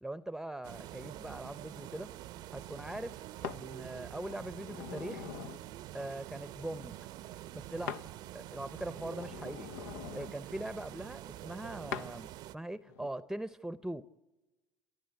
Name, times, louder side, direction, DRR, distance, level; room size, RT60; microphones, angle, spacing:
voice 1, 0.0-2.1 2.5-5.3 5.9-6.9 7.5-8.0 8.3-9.7 10.1-14.0, right 1 dB, 5° right, 15 dB, 0.7 m, -41 dB
sound 1, 0.6-12.5, right 14 dB, 65° right, 0.7 m, -46 dB
sound 2, 3.4-3.6 4.3-5.6 7.9-8.1 8.5-10.3 11.9-12.1 12.8-13.1, left 8 dB, 80° left, 0.8 m, -43 dB
29.5 x 14.0 x 8.2 m, 1.1 s
hypercardioid pair, 75°, 8 cm